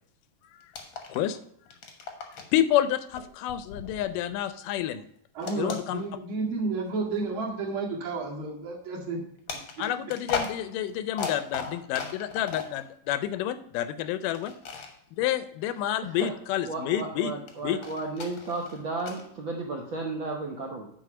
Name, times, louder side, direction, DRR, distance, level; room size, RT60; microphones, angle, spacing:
sound 1, 0.6-1.4 1.6-2.6 3.1-4.6 5.4-6.5 7.1-7.3 9.5-12.8 14.3-14.9 17.5-19.3, left 5 dB, 55° left, 1.4 m, -37 dB
voice 1, 2.2-5.0 5.6-6.0 9.8-14.5 15.2-17.3 17.6-17.8, left 11 dB, 80° left, 13 dB, 2.1 m, -29 dB
voice 2, 5.3-9.2, right 3 dB, 40° right, -3 dB, 2.6 m, -31 dB
voice 3, 16.7-20.9, right 3 dB, 80° right, 0 dB, 1.1 m, -34 dB
9.1 x 4.6 x 5.9 m, 0.70 s
omnidirectional pair, 3.9 m